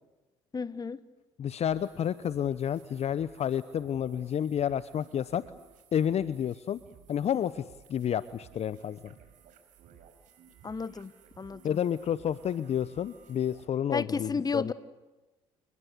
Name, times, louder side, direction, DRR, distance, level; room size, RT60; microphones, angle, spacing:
voice 1, 0.5-1.0 10.6-11.8 13.9-14.7, left 5 dB, 30° left, 16 dB, 1.5 m, -33 dB
voice 2, 1.4-5.4 5.9-6.8 7.1-7.6 7.9-9.0 11.6-14.7, left 9 dB, 50° left, 16 dB, 0.9 m, -30 dB
sound 1, 1.7-13.6, right 7 dB, 65° right, 4.8 m, -57 dB
29.5 x 20.5 x 8.4 m, 1.1 s
hypercardioid pair, 65°, 14 cm